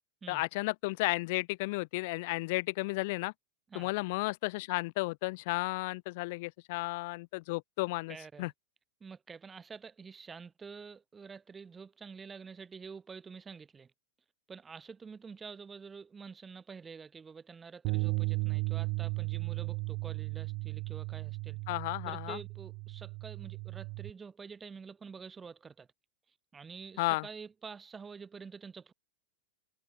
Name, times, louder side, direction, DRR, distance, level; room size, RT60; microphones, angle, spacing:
voice 1, 0.3-3.3 3.7-8.5 21.7-22.4 27.0-27.3, left 24 dB, 50° left, 1.8 m, -33 dB
voice 2, 8.1-8.5 9.0-13.9 14.5-21.6 22.1-25.9 26.5-28.9, right 5 dB, 15° right, 2.4 m, -48 dB
sound 1, 17.8-24.1, right 30 dB, 45° right, 0.9 m, -35 dB
figure-of-eight pair, 90°, 0 cm